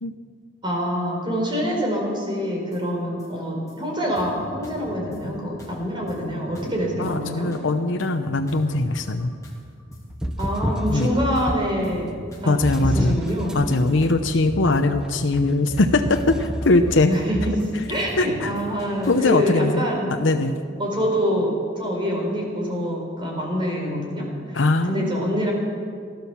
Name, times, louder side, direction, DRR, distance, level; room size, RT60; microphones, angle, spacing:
voice 1, 0.6-7.5 10.4-12.5 12.8-13.6 17.1-17.5 17.9-20.1 20.8-24.6 24.9-25.5, equal, 25° right, -1 dB, 4.6 m, -25 dB
sound 1, 2.7-2.8 3.2-3.3 3.7-3.8 4.1-5.2 5.6-5.7 6.1-6.2 6.4-7.1 7.5-10.0 10.3-11.0 11.3-11.5 11.8-12.9 13.3-13.4 13.7-13.9 14.1-14.8 15.2-17.7 17.9-19.4, left 1 dB, 20° left, 2.8 m, -41 dB
voice 2, 7.0-9.3 10.9-11.1 12.5-13.2 13.5-17.1 18.2-18.5 19.1-19.9 20.2-20.5 24.5-25.2, left 2 dB, 70° left, 5 dB, 0.8 m, -21 dB
sound 2, 10.1-11.9 12.6-18.0, equal, 5° right, 0.7 m, -29 dB
17.0 x 12.0 x 7.1 m, 2.2 s
head